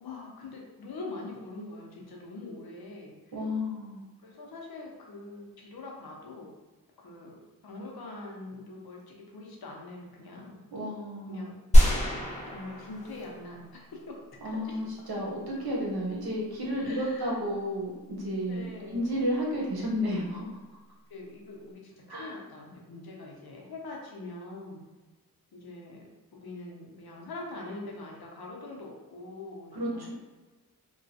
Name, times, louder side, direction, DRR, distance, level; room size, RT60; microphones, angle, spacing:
voice 1, 0.0-3.3 4.2-6.5 7.0-7.4 7.6-10.6 11.3-11.6 12.5-14.2 14.6-14.8 16.8-17.4 18.5-19.0 21.1-24.8 25.5-30.1, left 2 dB, 85° left, -2 dB, 0.7 m, -43 dB
voice 2, 3.3-4.0 10.7-11.5 14.4-18.6 18.9-20.4 22.1-22.3 29.7-30.1, equal, 85° right, -4 dB, 0.9 m, -32 dB
sound 1, 11.7-13.7 14.0-14.1, equal, 20° left, 0.7 m, -22 dB
3.0 x 2.3 x 2.7 m, 1.2 s
wide cardioid pair, 85°, 37 cm